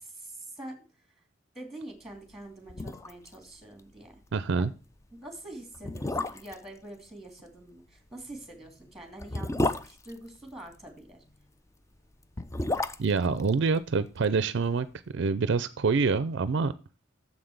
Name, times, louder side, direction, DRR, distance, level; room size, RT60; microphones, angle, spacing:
voice 1, 0.2-0.8 1.5-4.1 4.6-4.7 5.1-11.2, right 1 dB, ahead, 4 dB, 2.5 m, -45 dB
sound 1, 2.3-2.4 2.7-3.4 3.6-3.7 4.1-4.3 5.0-5.1 5.7-6.7 8.2-10.9 12.1-14.4 14.6-14.7, left 2 dB, 15° left, 0.4 m, -32 dB
voice 2, 4.3-4.7 13.0-14.9 15.1-16.7, right 4 dB, 60° right, 15 dB, 0.4 m, -26 dB
7.2 x 5.9 x 6.5 m, 0.34 s
head